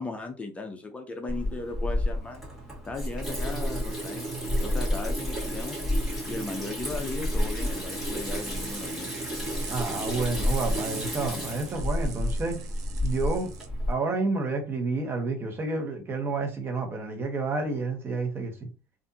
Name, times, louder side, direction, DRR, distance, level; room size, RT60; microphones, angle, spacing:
voice 1, 0.0-2.4 2.8-5.8 6.2-9.1, left 3 dB, 15° left, 0.5 m, -37 dB
Water tap faucet / Sink (filling or washing), 1.3-13.9, equal, 5° right, 1.9 m, -30 dB
sound 1, 8.2-13.7, right 8 dB, 50° right, 0.6 m, -44 dB
voice 2, 9.7-12.6 13.0-13.5 13.9-18.7, right 3 dB, 30° right, 1.1 m, -30 dB
3.4 x 2.5 x 2.7 m
supercardioid pair, 100°, 8 cm